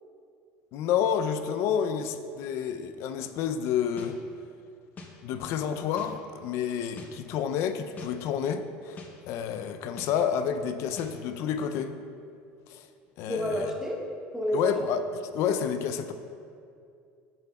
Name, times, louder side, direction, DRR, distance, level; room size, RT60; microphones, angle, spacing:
voice 1, 0.7-4.2 5.2-9.0 9.3-12.0 12.7-12.9 13.2-13.7 14.5-16.1, left 8 dB, 60° left, 9 dB, 0.4 m, -29 dB
sound 1, 4.0-4.1 5.0-5.1 6.0-6.1 7.0-7.1 8.0-8.1 9.0-9.1 10.0-10.1 11.0-11.1, left 3 dB, 35° left, 0.8 m, -43 dB
voice 2, 13.3-14.0 14.3-14.7, equal, 10° right, -1 dB, 0.7 m, -29 dB
8.8 x 5.9 x 2.3 m, 2.4 s
cardioid pair, 130°, 5 cm